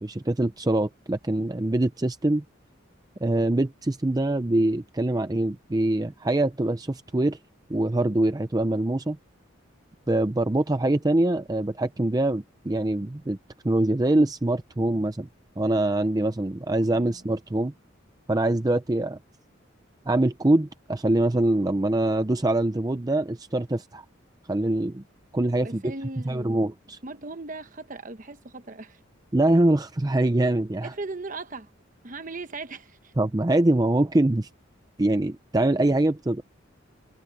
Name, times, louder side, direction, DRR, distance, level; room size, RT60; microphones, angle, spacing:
voice 1, 0.0-2.4 3.2-7.4 7.7-9.2 10.1-13.4 13.6-15.3 15.6-17.7 18.3-19.2 20.1-24.0 24.5-25.0 25.3-25.8 26.3-27.0 29.3-30.9 33.2-34.5 35.0-36.4, right 1 dB, 20° right, 0.5 m, -24 dB
voice 2, 16.8-17.3 25.6-26.6 27.0-29.0 30.8-31.7 32.0-33.1, right 3 dB, 40° right, 1.1 m, -38 dB
head